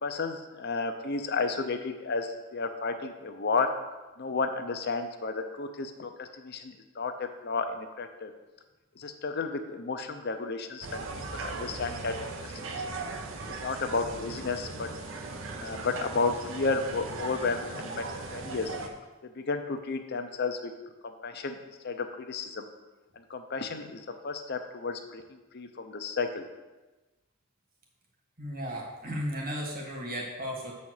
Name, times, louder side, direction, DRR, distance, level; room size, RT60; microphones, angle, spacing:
voice 1, 0.0-3.7 4.2-8.3 9.0-11.1 11.4-12.1 12.7-13.0 13.6-14.9 15.6-18.1 18.3-18.7 19.2-20.7 21.0-21.6 21.8-22.7 23.2-26.4, left 4 dB, 55° left, 6 dB, 0.7 m, -32 dB
sound 1, 10.8-18.9, right 3 dB, 70° right, 0.9 m, -38 dB
voice 2, 28.4-30.7, equal, 45° right, -1 dB, 1.9 m, -35 dB
7.0 x 4.3 x 6.4 m, 1.1 s
head